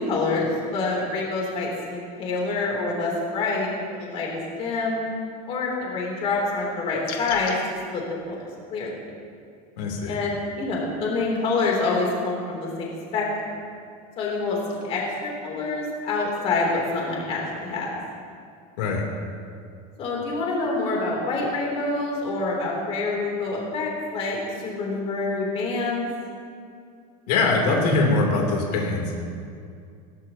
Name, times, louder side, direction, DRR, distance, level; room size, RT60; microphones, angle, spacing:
voice 1, 0.0-5.0 5.5-7.5 7.9-8.9 10.1-13.6 14.2-17.9 20.0-26.1, left 3 dB, 30° left, -3 dB, 3.2 m, -27 dB
sound 1, 7.0-7.6, left 7 dB, 45° left, 1.6 m, -35 dB
voice 2, 9.8-10.2 18.8-19.0 27.3-29.1, left 3 dB, 80° left, 0 dB, 3.2 m, -22 dB
20.0 x 18.5 x 2.9 m, 2.4 s
supercardioid pair, 180°, 20 cm